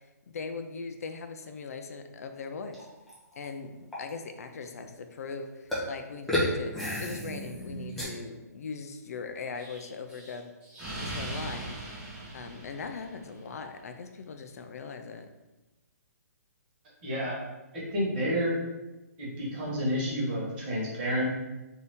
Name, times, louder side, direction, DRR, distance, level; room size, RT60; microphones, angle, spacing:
voice 1, 0.3-2.9 3.4-6.7 7.0-10.5 11.0-11.8 12.3-15.3, left 5 dB, 60° left, 7 dB, 0.3 m, -40 dB
sound 1, 2.7-3.5 3.9-4.1 5.7-5.9 6.3-8.0, left 1 dB, ahead, 0.5 m, -31 dB
Explosion, 9.6-13.4, right 2 dB, 15° right, 1.2 m, -40 dB
voice 2, 17.0-17.4 17.9-18.5 19.2-21.3, equal, 35° right, -5 dB, 1.3 m, -29 dB
2.7 x 2.6 x 3.4 m, 1.1 s
hypercardioid pair, 160°, 9 cm